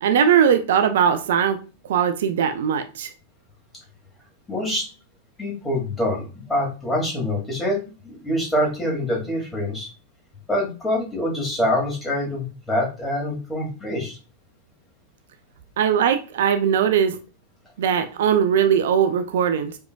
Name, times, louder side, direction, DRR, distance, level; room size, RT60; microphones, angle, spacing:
voice 1, 0.0-1.6 1.8-3.1 15.8-17.2 17.8-19.8, right 8 dB, 60° right, 0.4 m, -20 dB
voice 2, 4.5-4.9 5.4-9.9 10.5-14.2, left 1 dB, 10° left, 2.1 m, -25 dB
4.9 x 4.7 x 2.2 m
figure-of-eight pair, 90°, 0 cm